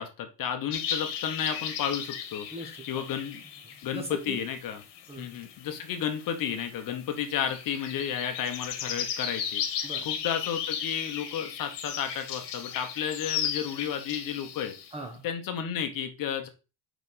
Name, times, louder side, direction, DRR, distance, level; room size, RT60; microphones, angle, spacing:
voice 1, 0.0-2.5 2.9-3.4 3.8-4.8 5.2-9.6 10.0-14.7 15.2-16.5, left 8 dB, 50° left, 6 dB, 1.0 m, -32 dB
sound 1, 0.7-14.9, left 8 dB, 75° left, 1.4 m, -36 dB
voice 2, 2.5-3.1 3.4-4.5 5.1-5.3 9.8-10.1 14.9-15.2, right 1 dB, 15° right, 3 dB, 1.2 m, -41 dB
5.0 x 5.0 x 4.1 m, 0.32 s
cardioid pair, 165°, 42 cm